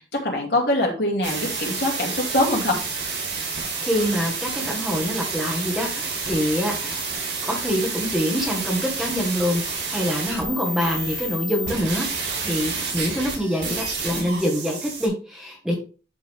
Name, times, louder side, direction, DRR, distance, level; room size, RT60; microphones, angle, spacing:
voice 1, 0.2-2.8, left 1 dB, 65° left, -1 dB, 2.5 m, -23 dB
sound 1, 1.2-15.1, right 4 dB, 85° right, 4.4 m, -29 dB
voice 2, 3.8-7.0 7.5-12.1 12.4-15.8, equal, ahead, -1 dB, 1.4 m, -25 dB
11.0 x 3.7 x 3.6 m, 0.36 s
head